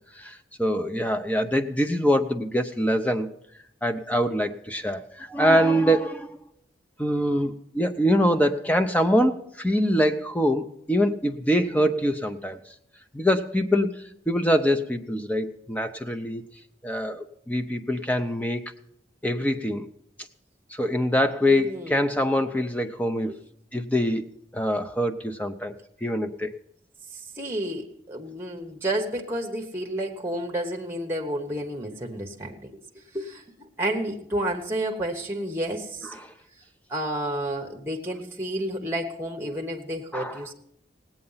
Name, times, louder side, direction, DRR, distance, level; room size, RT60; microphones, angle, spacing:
voice 1, 0.1-3.3 3.8-6.4 7.0-12.6 13.1-16.4 16.8-18.6 19.2-19.9 20.7-23.4 23.7-25.8 26.0-26.6 36.1-36.3 40.1-40.5, equal, 10° left, 7 dB, 0.6 m, -24 dB
voice 2, 21.5-22.1 23.3-23.4 27.1-32.8 33.1-36.2 36.9-40.5, right 1 dB, 15° right, 2 dB, 1.0 m, -31 dB
17.5 x 8.7 x 5.6 m, 0.76 s
head